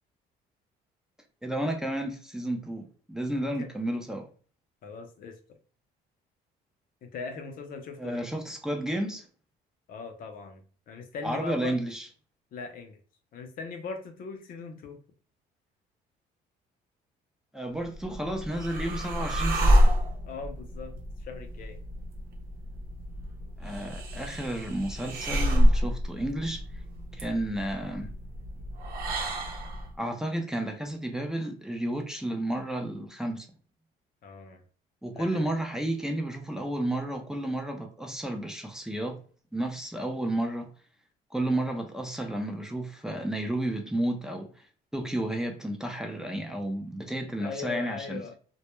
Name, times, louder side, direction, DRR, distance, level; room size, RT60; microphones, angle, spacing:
voice 1, 1.4-4.3 8.0-9.3 11.2-12.1 17.5-19.7 23.6-26.6 27.1-28.1 30.0-33.5 35.0-39.2 39.5-40.7 41.3-44.7 44.9-48.2, right 1 dB, 5° right, 0.4 m, -32 dB
voice 2, 3.3-3.7 4.8-5.4 7.0-8.3 9.9-11.8 12.5-13.0 13.3-15.0 20.3-21.8 34.2-34.6 35.1-35.5 47.4-48.4, left 4 dB, 55° left, 0.6 m, -40 dB
sound 1, 17.8-29.9, equal, 60° right, 0.7 m, -28 dB
2.2 x 2.1 x 3.0 m
cardioid pair, 110°, 17 cm